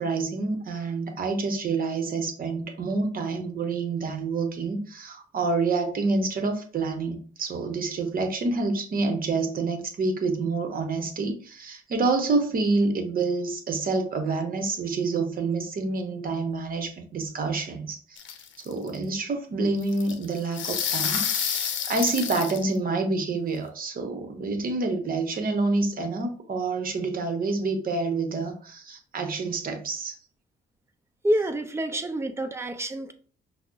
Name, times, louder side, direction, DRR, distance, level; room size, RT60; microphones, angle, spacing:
voice 1, 0.0-18.2 18.6-30.2, right 3 dB, 45° right, 0.8 m, -28 dB
sound 1, 18.2-18.9 19.8-22.6, left 8 dB, 70° left, 0.7 m, -29 dB
voice 2, 31.2-33.1, right 1 dB, 15° right, 0.6 m, -27 dB
5.7 x 2.0 x 2.4 m
cardioid pair, 90°, 20 cm